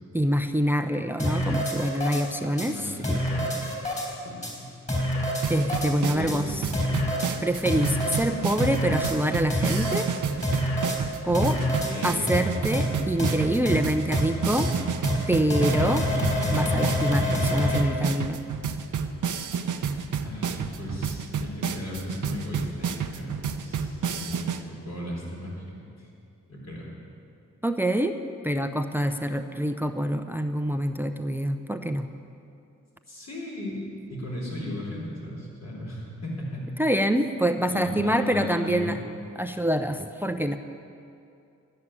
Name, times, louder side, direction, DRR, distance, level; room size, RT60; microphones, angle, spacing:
voice 1, 0.1-3.2 5.5-6.5 7.4-10.1 11.2-11.6 12.0-14.7 15.3-16.1 16.5-18.4 27.6-28.2 28.4-32.1 36.8-39.0 39.4-40.6, right 1 dB, 5° right, 7 dB, 0.7 m, -26 dB
sound 1, 1.2-2.2 2.6-2.7 3.0-4.1 4.4-4.5 4.9-5.9 6.3-6.4 6.7-7.3 7.7-8.2 8.6-9.1 9.5-10.1 10.4-11.0 11.3-11.9 12.3-12.4 12.7-12.9 13.2-13.3 13.7-13.8 14.1-14.2 14.6-14.7 15.0-15.2 15.5-17.8, left 1 dB, 25° left, 4.0 m, -26 dB
voice 2, 2.6-3.5 4.1-4.7 6.0-6.7 8.3-8.4 11.4-12.6 19.6-19.8 20.2-26.1 26.5-26.9 33.1-33.8 34.1-36.7 37.7-38.9, left 1 dB, 55° left, -4 dB, 4.0 m, -36 dB
sound 2, 5.4-24.6, right 6 dB, 70° right, 0.8 m, -31 dB
12.5 x 6.7 x 9.8 m, 2.6 s
cardioid pair, 40°, 32 cm